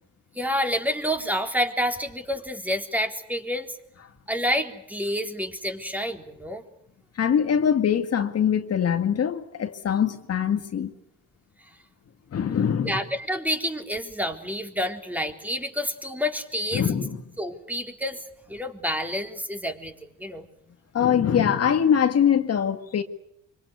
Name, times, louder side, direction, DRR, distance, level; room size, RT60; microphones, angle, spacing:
voice 1, 0.4-3.8 4.3-6.6 12.8-16.9 17.4-18.2 18.5-19.9 20.2-20.4, equal, 5° right, 3.8 m, -28 dB
voice 2, 7.2-10.9 12.3-13.0 16.7-17.2 20.9-23.0, left 8 dB, 55° left, 2.0 m, -23 dB
25.5 x 25.0 x 8.3 m
cardioid pair, 90°, 30 cm